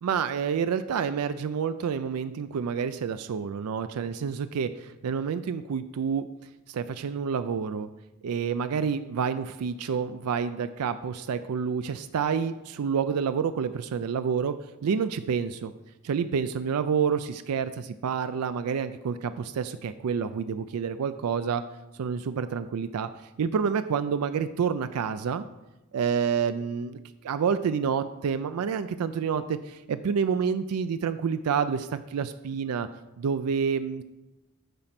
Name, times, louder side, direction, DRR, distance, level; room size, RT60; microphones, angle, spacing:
voice 1, 0.0-6.3 6.7-7.9 8.2-14.5 14.8-15.7 16.0-21.6 22.0-23.1 23.4-25.4 25.9-32.9 33.2-34.0, right 6 dB, 85° right, 11 dB, 0.4 m, -28 dB
9.0 x 4.4 x 5.8 m, 1.0 s
head